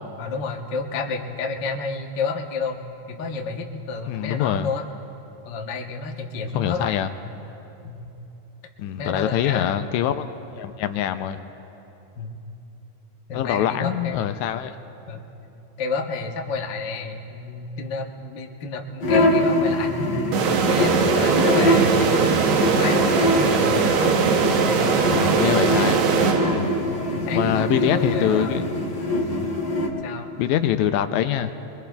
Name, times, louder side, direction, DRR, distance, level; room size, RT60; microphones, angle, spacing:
voice 1, 0.2-2.8 3.1-4.8 5.4-7.0 7.8-8.1 9.0-9.9 12.2-12.3 13.3-14.2 15.1-15.2 15.8-25.0 26.8-28.7 30.0-30.4, left 4 dB, 65° left, 2 dB, 1.1 m, -30 dB
voice 2, 4.1-4.7 6.6-7.1 8.8-11.4 13.3-14.7 25.0-26.1 27.3-28.6 29.4-29.5 30.4-31.6, left 11 dB, 80° left, 10 dB, 1.9 m, -24 dB
sound 1, 19.0-29.9, left 1 dB, 45° left, 1.5 m, -23 dB
sound 2, 20.3-27.0, right 6 dB, 70° right, 1.7 m, -21 dB
23.0 x 23.0 x 2.3 m, 3.0 s
omnidirectional pair, 3.4 m